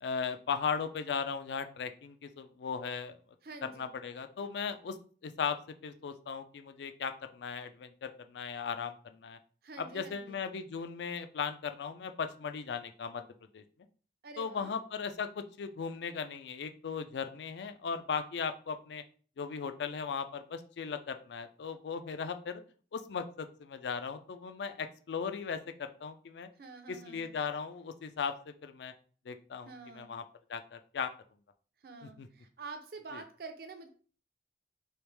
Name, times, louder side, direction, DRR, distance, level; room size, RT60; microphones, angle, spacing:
voice 1, 0.0-3.2 3.6-5.0 5.2-5.6 5.8-9.4 9.8-13.2 13.5-13.6 14.4-19.0 19.4-22.6 22.9-26.5 26.9-28.9 29.3-30.2 30.5-31.1 32.0-32.3 33.1-33.2, left 6 dB, 75° left, 9 dB, 0.4 m, -37 dB
voice 2, 3.4-3.9 9.6-10.4 14.2-14.8 26.6-27.3 29.7-30.1 31.8-33.9, right 3 dB, 55° right, 6 dB, 0.6 m, -47 dB
3.2 x 3.0 x 3.2 m, 0.42 s
head